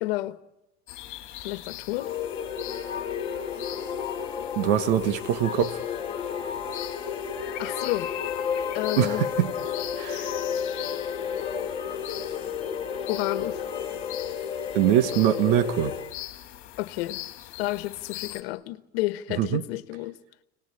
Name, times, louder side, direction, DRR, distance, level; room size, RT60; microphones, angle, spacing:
voice 1, 0.0-0.4 1.4-2.2 7.6-8.1 8.7-9.3 13.1-13.7 16.8-17.2 17.6-20.2, left 18 dB, 70° left, 1.5 m, -30 dB
sound 1, 0.9-18.4, left 15 dB, 40° left, 2.6 m, -42 dB
sound 2, 1.9-16.1, left 7 dB, 15° left, 2.2 m, -32 dB
voice 2, 4.6-5.8 9.0-9.5 10.0-10.4 14.7-15.9 19.4-19.6, right 11 dB, 60° right, 1.4 m, -23 dB
30.0 x 19.0 x 10.0 m
supercardioid pair, 165°, 32 cm